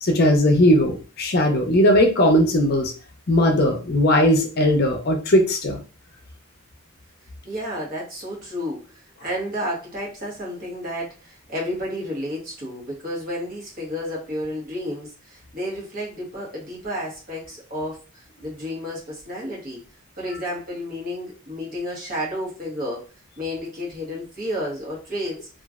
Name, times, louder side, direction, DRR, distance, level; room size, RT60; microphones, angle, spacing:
voice 1, 0.0-2.9 3.3-5.8, left 1 dB, 45° left, 2 dB, 0.6 m, -18 dB
voice 2, 7.4-19.8 20.2-23.1 23.4-25.5, equal, 40° right, -4 dB, 1.1 m, -31 dB
3.0 x 2.4 x 2.4 m, 0.34 s
head